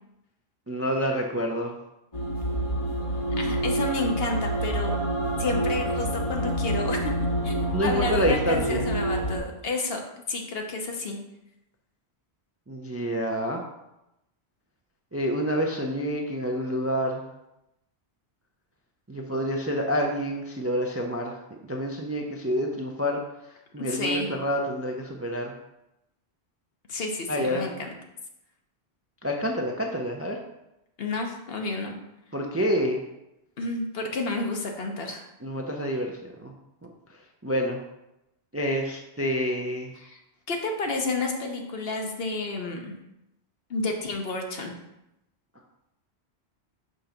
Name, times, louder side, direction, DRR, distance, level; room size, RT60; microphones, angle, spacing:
voice 1, 0.7-1.7 7.7-8.9 12.7-13.6 15.1-17.2 19.1-21.4 21.7-23.2 23.7-25.5 27.3-27.7 29.2-30.4 32.3-33.0 35.4-36.5 37.4-37.8 38.5-39.9, equal, 20° right, 1 dB, 0.4 m, -28 dB
sound 1, 2.1-9.4, right 1 dB, 35° left, 0.8 m, -27 dB
voice 2, 3.4-4.9 5.4-10.0 10.3-11.2 23.8-24.3 26.9-27.9 31.0-31.9 33.6-35.3 40.0-40.2 40.5-43.0 43.7-44.7, left 3 dB, 65° left, 2 dB, 1.1 m, -30 dB
5.2 x 3.9 x 5.8 m, 0.89 s
omnidirectional pair, 1.1 m